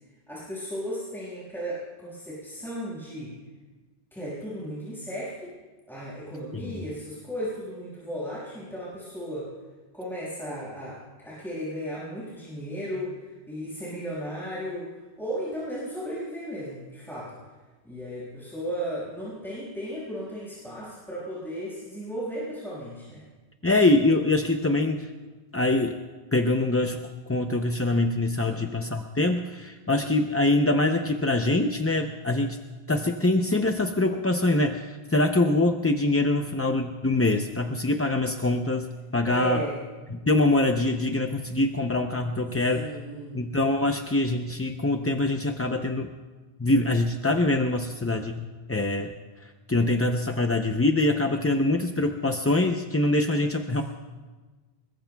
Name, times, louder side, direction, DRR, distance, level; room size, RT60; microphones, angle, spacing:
voice 1, 0.3-3.4 4.1-5.5 5.9-9.5 9.9-17.4 17.8-23.2 28.4-28.6 39.2-39.8 42.5-43.5 53.7-53.8, equal, ahead, -8 dB, 5.7 m, -35 dB
voice 2, 23.6-25.1 25.5-26.0 26.3-27.0 27.3-32.6 32.9-38.9 39.1-39.6 40.1-42.9 43.3-46.1 46.6-49.1 49.7-53.8, left 2 dB, 20° left, 4 dB, 0.5 m, -24 dB
26.0 x 22.0 x 2.3 m, 1.3 s
omnidirectional pair, 1.1 m